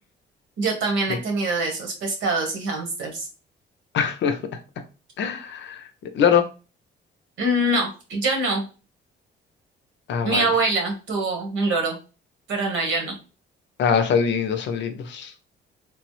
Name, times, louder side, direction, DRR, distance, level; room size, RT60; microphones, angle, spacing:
voice 1, 0.6-3.3 7.4-8.7 10.2-12.0 12.5-13.1, right 2 dB, 80° right, 1.2 m, -24 dB
voice 2, 3.9-4.4 5.2-5.8 6.1-6.4 10.1-10.4 13.8-15.3, left 7 dB, 65° left, 0.6 m, -22 dB
3.2 x 2.0 x 3.1 m
cardioid pair, 90°, 20 cm